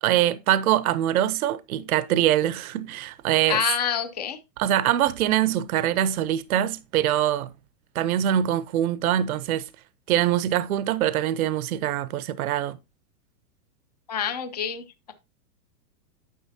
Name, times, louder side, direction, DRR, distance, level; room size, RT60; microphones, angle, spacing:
voice 1, 0.0-3.6 4.6-7.5 7.9-9.7 10.1-12.8, right 12 dB, 60° right, 0.7 m, -23 dB
voice 2, 3.5-4.4 14.1-15.1, left 8 dB, 30° left, 0.4 m, -27 dB
9.5 x 6.7 x 2.7 m
supercardioid pair, 175°, 49 cm